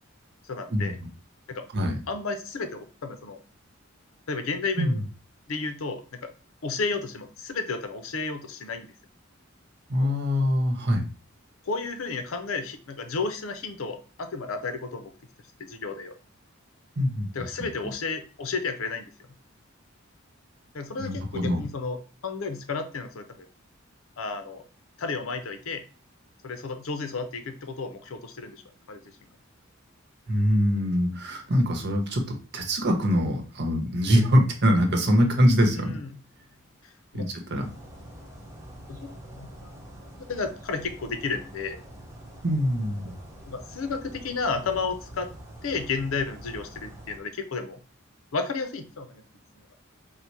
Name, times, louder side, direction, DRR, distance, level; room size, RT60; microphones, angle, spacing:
voice 1, 0.4-1.0 1.5-1.6 2.1-3.4 4.3-5.0 5.5-6.3 6.6-8.9 10.0-10.1 11.7-15.1 15.6-16.1 17.3-19.1 20.7-23.5 24.2-24.6 25.0-25.8 26.4-28.6 28.9-29.2 35.8-36.1 36.8-37.3 37.5-37.7 38.9-39.0 39.3-39.8 40.3-41.8 43.5-45.3 45.6-47.8 48.3-49.2 49.6-49.7, left 4 dB, 75° left, 8 dB, 0.6 m, -32 dB
voice 2, 9.9-11.0 17.0-17.3 21.0-21.6 30.3-36.0 37.1-37.7 42.4-43.1, equal, 55° right, 3 dB, 0.9 m, -23 dB
sound 1, 37.6-47.2, right 1 dB, 15° right, 1.0 m, -45 dB
4.1 x 2.1 x 4.5 m, 0.37 s
head